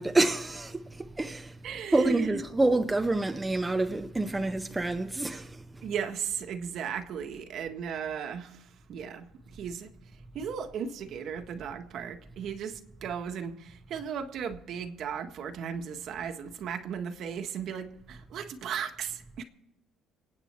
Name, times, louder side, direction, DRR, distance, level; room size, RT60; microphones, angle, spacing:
voice 1, 0.0-1.6 1.9-5.9, right 2 dB, 10° right, 0.6 m, -28 dB
voice 2, 1.6-2.4 5.3-5.4 5.8-9.9 10.3-19.4, right 7 dB, 55° right, 1.5 m, -36 dB
26.0 x 8.8 x 4.5 m
cardioid pair, 145°, 0 cm